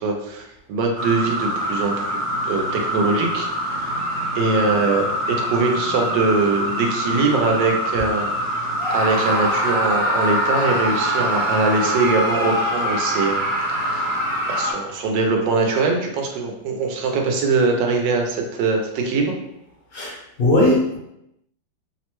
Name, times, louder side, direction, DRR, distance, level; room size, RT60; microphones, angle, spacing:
voice 1, 0.0-4.0 4.3-8.3 8.5-13.4 13.8-14.2 14.5-19.3, right 3 dB, 80° right, 2 dB, 1.3 m, -22 dB
sound 1, 1.0-14.7, equal, 55° right, 0.8 m, -25 dB
Screaming, 8.8-15.0, equal, 25° right, 0.7 m, -25 dB
voice 2, 19.9-21.0, left 1 dB, 65° left, -5 dB, 1.0 m, -19 dB
3.2 x 2.1 x 2.9 m, 0.81 s
omnidirectional pair, 2.0 m